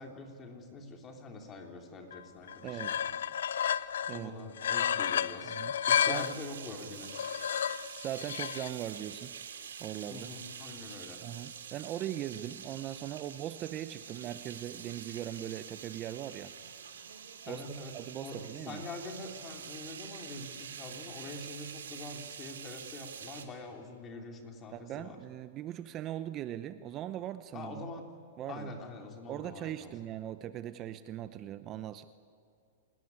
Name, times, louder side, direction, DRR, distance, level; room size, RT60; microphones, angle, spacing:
voice 1, 0.0-3.2 4.1-7.1 10.1-11.2 17.5-25.2 27.5-28.1 28.5-30.0, left 2 dB, 25° left, 3 dB, 3.6 m, -45 dB
sound 1, 2.1-2.2 2.5-4.2 4.6-6.4 7.0-8.7, left 9 dB, 80° left, 0.6 m, -31 dB
voice 2, 2.6-2.9 4.1-4.3 5.4-5.7 6.1-6.3 8.0-9.4 9.8-10.3 11.2-16.5 17.5-17.6 17.9-18.8 24.7-27.8 28.4-28.7 29.3-32.0, right 12 dB, 30° right, 12 dB, 0.7 m, -40 dB
sound 2, 6.1-23.4, right 7 dB, 85° right, 3.0 m, -46 dB
27.5 x 18.5 x 9.7 m, 2.3 s
hypercardioid pair, 140°, 0 cm